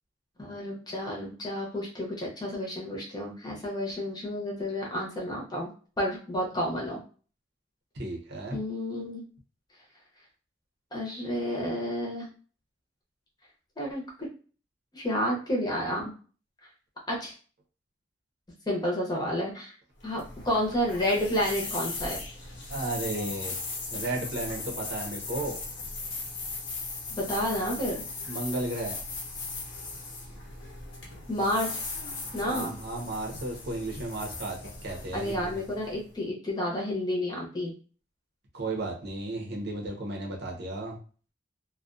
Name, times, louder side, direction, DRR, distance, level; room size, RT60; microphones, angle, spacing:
voice 1, 0.4-5.7 6.0-7.0 8.5-9.2 10.9-12.3 13.8-14.1 14.9-16.1 17.1-17.3 18.7-19.7 20.0-22.2 27.1-28.0 31.3-31.8 32.3-32.8 35.1-37.7, equal, 20° left, -2 dB, 0.7 m, -30 dB
voice 2, 7.9-8.6 22.7-23.5 23.9-25.5 28.3-29.0 32.5-35.6 38.5-41.0, right 2 dB, 65° right, 0 dB, 0.7 m, -34 dB
sound 1, 20.0-36.2, left 3 dB, 85° left, 0.8 m, -38 dB
2.3 x 2.2 x 2.5 m, 0.39 s
head